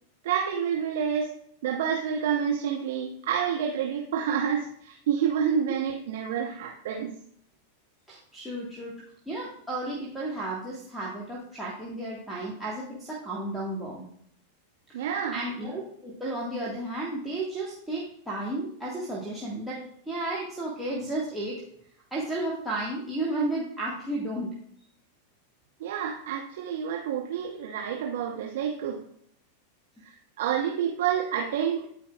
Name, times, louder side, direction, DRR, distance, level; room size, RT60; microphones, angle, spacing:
voice 1, 0.2-1.3 1.6-7.1 14.9-15.4 25.8-29.0 30.0-31.9, right 8 dB, 55° right, 0 dB, 0.8 m, -28 dB
voice 2, 8.1-8.9 9.3-14.0 14.9-15.0 15.3-21.6 22.1-24.5, right 2 dB, ahead, -7 dB, 1.6 m, -33 dB
12.5 x 4.5 x 2.4 m, 0.67 s
figure-of-eight pair, 90°, 0 cm